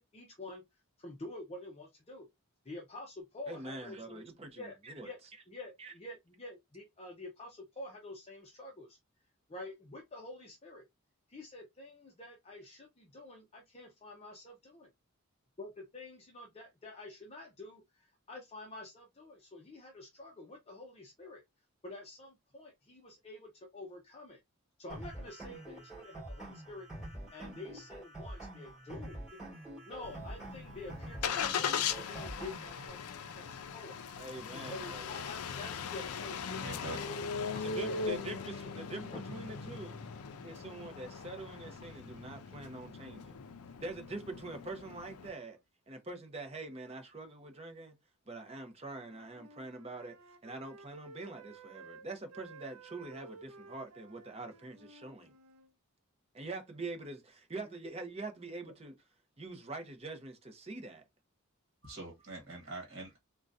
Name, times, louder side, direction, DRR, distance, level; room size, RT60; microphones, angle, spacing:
voice 1, 0.0-2.3 2.6-5.2 5.5-9.0 9.5-10.9 11.3-14.9 15.6-21.4 21.8-24.4 24.8-26.9 27.3-29.3 29.8-34.0 34.5-38.4 39.1-39.2, left 2 dB, 25° left, 0.5 m, -48 dB
voice 2, 3.5-5.1 5.8-5.9 34.2-35.2 37.6-40.0 40.4-43.3 43.8-45.6 45.9-47.9 48.3-50.1 50.4-55.3 56.3-58.9 59.4-61.0, right 2 dB, 25° right, 0.7 m, -44 dB
sound 1, 24.9-32.9, right 1 dB, ahead, 2.3 m, -46 dB
Engine starting, 30.0-45.3, left 6 dB, 80° left, 0.4 m, -39 dB
voice 3, 36.6-37.0 37.5-37.7 61.8-63.2, right 2 dB, 45° right, 1.3 m, -44 dB
Wind instrument woodwind instrument, 48.9-55.7, right 3 dB, 90° right, 0.5 m, -54 dB
3.8 x 2.2 x 2.5 m
head